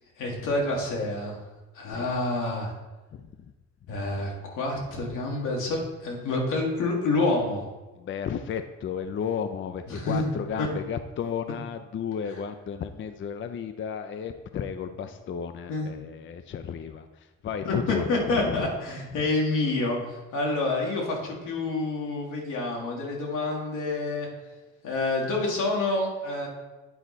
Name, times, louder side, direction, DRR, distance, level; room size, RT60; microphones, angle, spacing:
voice 1, 0.2-1.4 1.8-2.7 3.9-7.7 9.9-10.3 10.6-10.7 15.7-15.9 17.6-24.3 24.8-26.5, left 2 dB, 90° left, -1 dB, 1.8 m, -28 dB
voice 2, 8.0-18.7 19.1-19.3, left 7 dB, 40° left, 9 dB, 0.5 m, -33 dB
9.2 x 4.2 x 4.1 m, 1.2 s
cardioid pair, 90°, 30 cm